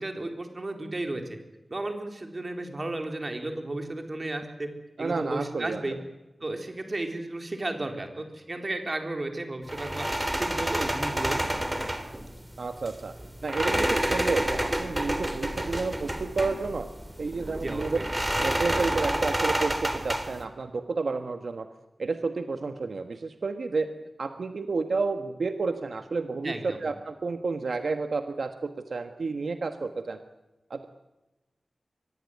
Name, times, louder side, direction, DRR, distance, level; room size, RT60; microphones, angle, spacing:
voice 1, 0.0-1.4 1.7-4.7 5.0-6.0 6.4-10.1 10.3-11.4 17.6-18.0 26.4-26.8, right 2 dB, 40° right, 5 dB, 4.0 m, -33 dB
voice 2, 5.0-5.8 12.6-13.1 13.4-16.9 17.2-18.0 18.4-21.7 22.0-23.9 24.2-30.2 30.7-30.8, right 4 dB, 80° right, 7 dB, 1.4 m, -30 dB
sound 1, 9.7-20.4, right 1 dB, 15° right, 3.2 m, -29 dB
23.5 x 19.0 x 9.6 m, 1.0 s
wide cardioid pair, 90°, 0 cm